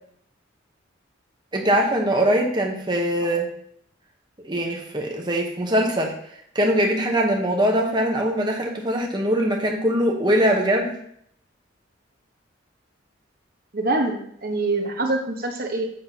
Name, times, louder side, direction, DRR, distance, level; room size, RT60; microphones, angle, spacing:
voice 1, 1.5-3.5 4.4-6.1 6.5-10.9, equal, 20° right, 0 dB, 1.0 m, -22 dB
voice 2, 13.7-15.9, right 2 dB, 45° right, 3 dB, 1.0 m, -25 dB
7.8 x 6.6 x 2.8 m, 0.70 s
head